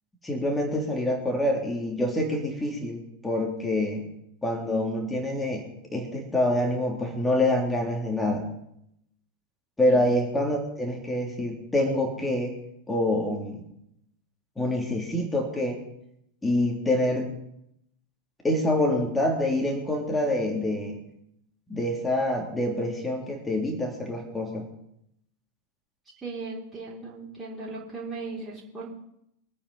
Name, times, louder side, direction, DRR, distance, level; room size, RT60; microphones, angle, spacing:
voice 1, 0.2-4.1 4.4-5.6 5.9-8.4 9.8-12.5 12.9-13.6 14.6-15.8 16.4-17.3 18.4-21.0 21.7-24.7, left 1 dB, 10° left, 1 dB, 3.2 m, -26 dB
voice 2, 26.2-29.0, right 3 dB, 15° right, -6 dB, 3.6 m, -37 dB
23.5 x 8.9 x 5.6 m, 0.78 s
figure-of-eight pair, 90°, 0 cm